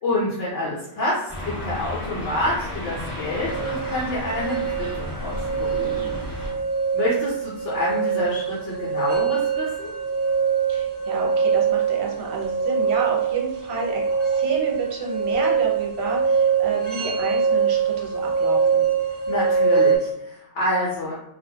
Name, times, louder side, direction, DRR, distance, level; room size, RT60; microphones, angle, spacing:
voice 1, 0.0-5.9 6.9-9.9 19.3-21.1, left 1 dB, 85° left, -7 dB, 1.0 m, -27 dB
sound 1, 1.3-6.5, left 1 dB, 20° left, 1.2 m, -33 dB
sound 2, 3.5-20.0, right 6 dB, 45° right, 0.6 m, -23 dB
voice 2, 5.7-6.2 10.7-18.8, right 4 dB, 70° right, -1 dB, 0.9 m, -31 dB
2.5 x 2.2 x 2.7 m, 0.77 s
omnidirectional pair, 1.2 m